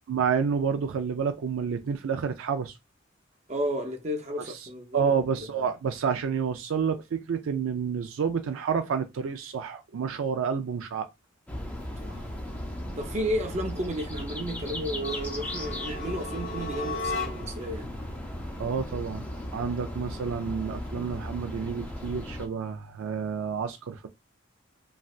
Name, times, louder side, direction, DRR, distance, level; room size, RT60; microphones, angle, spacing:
voice 1, 0.1-2.7 4.9-11.1 18.6-19.2 19.5-24.1, right 6 dB, 75° right, 0.4 m, -29 dB
voice 2, 3.5-5.1 12.0-12.3 13.0-17.9, equal, 35° right, 0.6 m, -32 dB
sound 1, 11.5-22.5, left 1 dB, 5° left, 0.5 m, -37 dB
sound 2, 14.9-17.7, left 3 dB, 70° left, 0.8 m, -36 dB
3.2 x 2.6 x 2.4 m
head